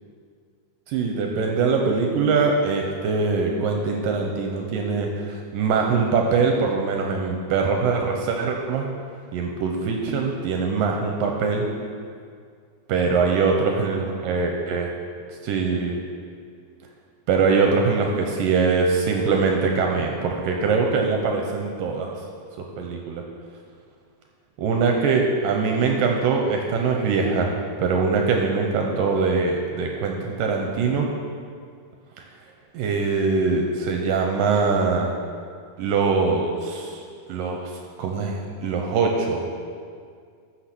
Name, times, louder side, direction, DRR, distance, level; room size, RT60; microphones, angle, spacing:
voice 1, 0.9-8.9 9.3-11.7 12.9-14.9 15.4-16.0 17.3-22.1 22.6-23.2 24.6-27.5 27.8-31.1 32.7-35.1 35.8-37.0 37.3-39.5, right 4 dB, 75° right, 1 dB, 2.3 m, -22 dB
14.0 x 6.3 x 6.0 m, 2.2 s
omnidirectional pair, 4.3 m